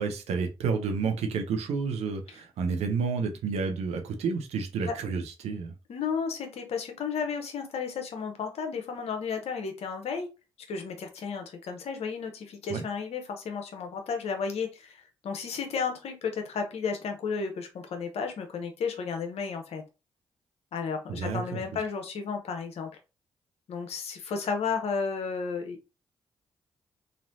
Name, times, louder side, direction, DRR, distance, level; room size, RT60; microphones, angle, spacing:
voice 1, 0.0-5.7 12.7-12.8 21.1-21.6, right 5 dB, 70° right, 5 dB, 0.7 m, -30 dB
voice 2, 5.9-10.3 10.7-19.8 20.7-22.9 23.7-25.9, left 5 dB, 65° left, 5 dB, 0.8 m, -33 dB
3.1 x 2.5 x 2.7 m, 0.28 s
hypercardioid pair, 40°, 11 cm